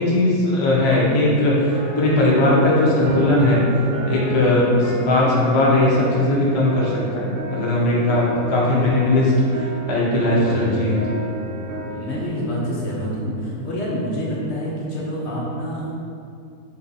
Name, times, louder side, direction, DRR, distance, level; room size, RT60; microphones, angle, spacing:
voice 1, 0.0-3.6 4.0-11.1, left 1 dB, 35° left, -6 dB, 0.4 m, -18 dB
sound 1, 1.7-12.3, left 1 dB, 50° right, 0.7 m, -31 dB
voice 2, 10.4-11.2 11.9-15.9, equal, 55° left, -5 dB, 0.9 m, -27 dB
3.8 x 2.8 x 3.8 m, 2.5 s
omnidirectional pair, 1.6 m